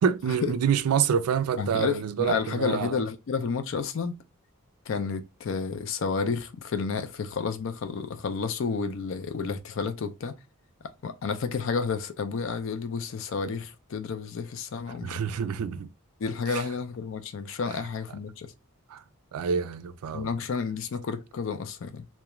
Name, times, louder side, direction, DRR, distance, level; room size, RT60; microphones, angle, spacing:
voice 1, 0.0-3.0 15.0-15.9 16.5-16.6 18.9-19.0 19.3-20.3, right 7 dB, 85° right, 0.3 m, -27 dB
voice 2, 1.6-4.2 4.9-10.4 11.0-15.2 16.2-18.5 20.1-22.1, left 5 dB, 60° left, 0.4 m, -31 dB
2.3 x 2.1 x 2.9 m
head